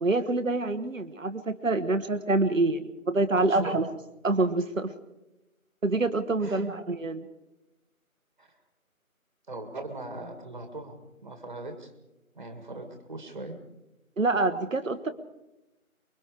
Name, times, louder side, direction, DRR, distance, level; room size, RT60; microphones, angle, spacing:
voice 1, 0.0-3.9 4.2-4.9 5.8-7.3 14.2-15.1, right 2 dB, 60° right, 10 dB, 1.2 m, -26 dB
voice 2, 3.3-3.8 6.4-6.7 8.4-8.5 9.5-11.9 12.3-13.6, right 2 dB, 30° right, 6 dB, 1.9 m, -40 dB
24.5 x 22.5 x 4.9 m, 0.98 s
figure-of-eight pair, 165°, 43 cm